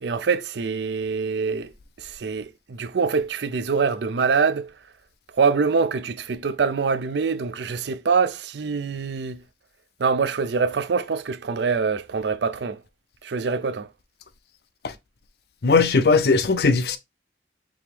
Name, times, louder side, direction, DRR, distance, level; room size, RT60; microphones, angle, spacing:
voice 1, 0.0-1.7 2.0-4.7 5.4-9.4 10.0-12.8 13.2-13.9, right 5 dB, 75° right, 0.5 m, -24 dB
voice 2, 15.6-17.0, left 4 dB, 60° left, 0.5 m, -18 dB
4.8 x 2.9 x 3.4 m
head